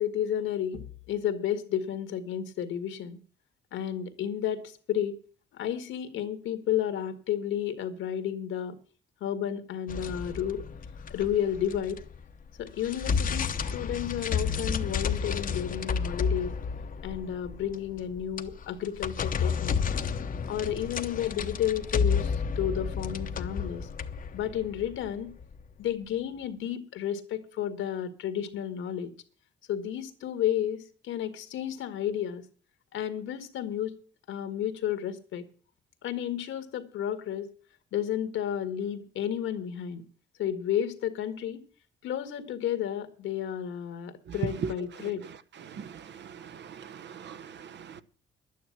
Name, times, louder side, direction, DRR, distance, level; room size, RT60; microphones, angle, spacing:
voice 1, 0.0-3.2 3.7-5.2 5.5-8.8 9.2-10.7 11.1-12.0 12.6-16.6 17.0-19.7 20.4-23.9 24.3-25.3 25.8-29.1 29.7-32.4 32.9-34.0 34.3-35.5 36.0-37.5 37.9-40.0 40.4-41.6 42.0-45.2, left 10 dB, 80° left, 1.8 m, -32 dB
sound 1, 9.9-12.2 12.6-25.6, left 6 dB, 45° left, 0.9 m, -31 dB
voice 2, 45.6-48.0, right 6 dB, 65° right, 1.0 m, -40 dB
11.5 x 9.4 x 7.3 m
cardioid pair, 90°, 20 cm